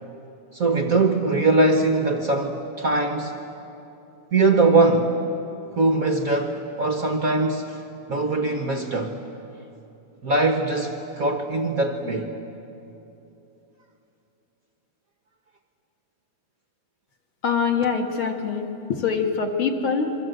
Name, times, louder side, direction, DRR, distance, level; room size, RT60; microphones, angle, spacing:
voice 1, 0.5-3.4 4.3-5.1 5.8-7.8 8.1-9.2 10.2-12.3, right 3 dB, 55° right, 5 dB, 1.0 m, -21 dB
voice 2, 17.4-20.2, left 5 dB, 50° left, 3 dB, 2.3 m, -24 dB
27.5 x 23.5 x 8.0 m, 3.0 s
omnidirectional pair, 3.4 m